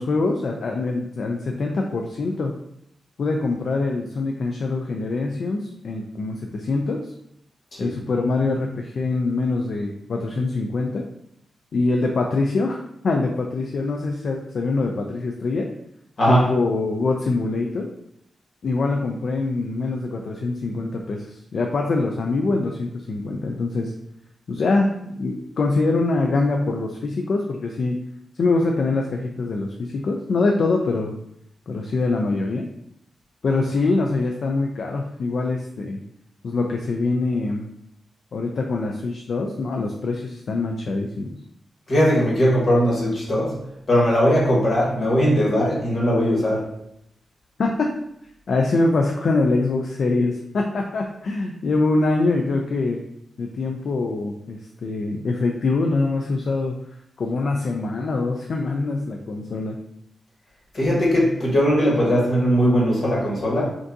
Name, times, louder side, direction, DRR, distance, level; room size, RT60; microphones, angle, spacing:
voice 1, 0.0-2.5 3.2-7.1 7.8-11.0 11.7-15.7 16.3-17.9 18.6-23.9 24.5-28.0 28.4-31.1 31.7-32.6 33.4-36.0 36.4-37.6 38.3-41.4 47.6-47.9 48.5-53.0 53.4-56.8 57.2-59.8, left 3 dB, 55° left, 2 dB, 0.3 m, -24 dB
voice 2, 16.2-16.5 41.9-43.6 43.9-46.7 60.7-63.6, equal, 40° left, -4 dB, 1.4 m, -19 dB
5.8 x 2.6 x 2.6 m, 0.78 s
wide cardioid pair, 165°, 0 cm